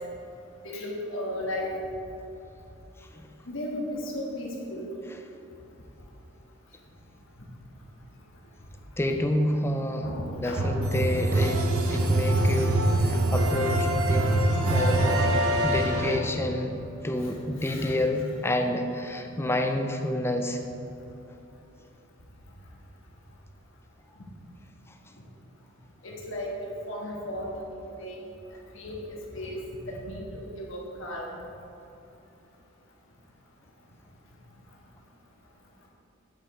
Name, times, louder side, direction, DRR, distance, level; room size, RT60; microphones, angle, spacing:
voice 1, 0.6-1.7 3.5-4.8 10.0-10.6 14.0-14.2 16.5-16.6 17.4-18.0 26.0-27.5 27.8-28.2 28.7-29.6 29.9-31.3, left 1 dB, 65° left, -2 dB, 1.5 m, -35 dB
voice 2, 9.0-10.1 10.3-15.3 15.6-16.7 17.0-20.6, left 1 dB, 10° left, 5 dB, 0.4 m, -29 dB
Synthesised orchestral intro sound, 10.6-16.2, right 1 dB, 85° right, 0.8 m, -24 dB
8.6 x 5.3 x 4.2 m, 2.8 s
head